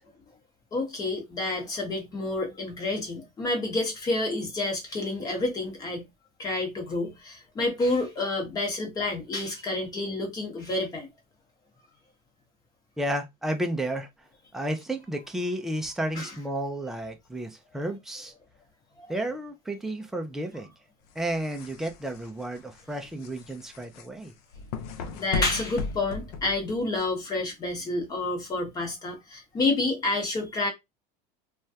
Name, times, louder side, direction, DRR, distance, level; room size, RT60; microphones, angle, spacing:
voice 1, 0.7-6.0 6.4-11.1 16.1-16.3 25.1-30.7, left 2 dB, 20° left, 1.0 m, -29 dB
voice 2, 13.0-14.1 14.5-18.3 19.1-20.7 21.2-24.3, right 1 dB, ahead, 0.3 m, -32 dB
sound 1, 21.1-27.0, left 4 dB, 75° left, 0.6 m, -36 dB
3.2 x 2.3 x 2.7 m
cardioid pair, 165°, 20 cm